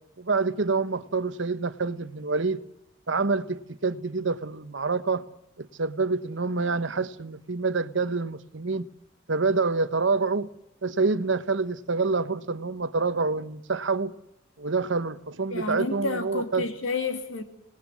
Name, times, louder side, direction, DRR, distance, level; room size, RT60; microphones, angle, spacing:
voice 1, 0.2-2.6 3.1-5.2 5.6-8.9 9.3-10.5 10.8-14.1 14.6-16.7, right 4 dB, 65° right, 1.0 m, -27 dB
voice 2, 15.5-17.4, left 3 dB, 85° left, 2.8 m, -30 dB
26.0 x 19.0 x 8.5 m
head